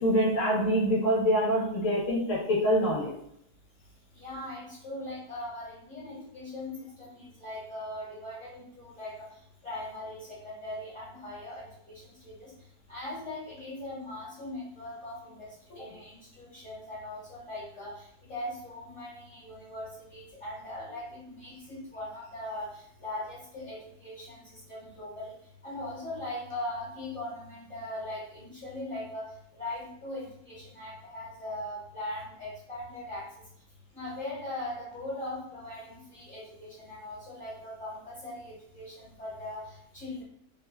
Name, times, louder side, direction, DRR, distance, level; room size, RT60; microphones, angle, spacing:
voice 1, 0.0-3.1 15.7-15.8, equal, 80° left, -4 dB, 1.3 m, -25 dB
voice 2, 4.1-9.1 9.6-12.5 12.9-15.5 15.7-25.3 25.6-29.3 29.5-33.2 33.9-40.2, left 1 dB, 45° left, -6 dB, 1.4 m, -40 dB
3.2 x 2.2 x 3.3 m, 0.72 s
omnidirectional pair, 1.3 m